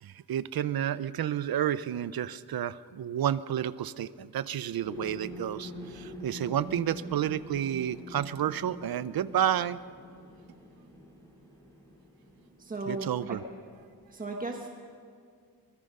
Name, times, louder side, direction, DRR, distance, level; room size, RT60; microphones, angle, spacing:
voice 1, 0.0-9.8 12.9-13.4, right 10 dB, 65° right, 16 dB, 0.6 m, -30 dB
sound 1, 4.8-14.0, left 1 dB, 10° left, 3.8 m, -45 dB
voice 2, 12.6-13.4 14.1-14.7, right 2 dB, 20° right, 1 dB, 1.4 m, -36 dB
25.0 x 20.0 x 5.4 m, 2.2 s
wide cardioid pair, 175°, 38 cm